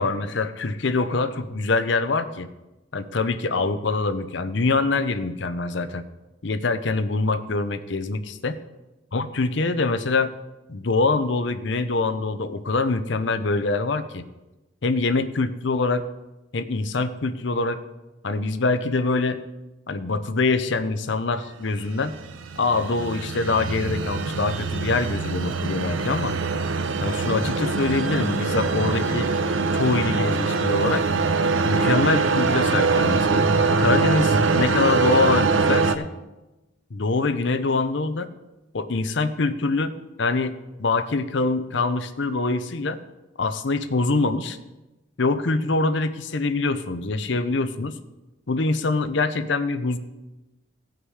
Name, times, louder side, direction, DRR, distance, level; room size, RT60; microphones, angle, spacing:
voice 1, 0.0-2.5 2.9-6.0 6.4-8.6 9.1-10.3 10.7-14.2 14.8-16.0 16.5-17.8 18.2-19.4 19.9-22.2 22.6-26.4 27.0-29.3 29.7-31.0 31.6-33.5 33.8-36.1 36.9-38.3 38.7-39.9 40.2-40.5 40.8-43.0 43.4-44.6 45.2-48.0 48.5-50.0, left 3 dB, 65° left, 10 dB, 0.7 m, -24 dB
sound 1, 21.8-35.9, right 4 dB, 80° right, 0.7 m, -23 dB
16.0 x 5.9 x 4.8 m, 1.0 s
head